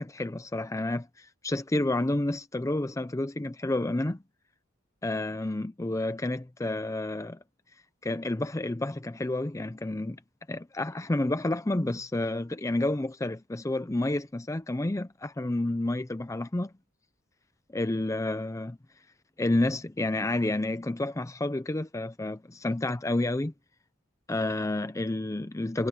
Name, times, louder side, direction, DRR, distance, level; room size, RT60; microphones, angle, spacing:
voice 1, 0.0-4.2 5.0-7.4 8.0-10.2 10.5-16.7 17.7-18.8 19.4-23.5 24.3-25.9, left 2 dB, 15° left, 0.5 m, -30 dB
head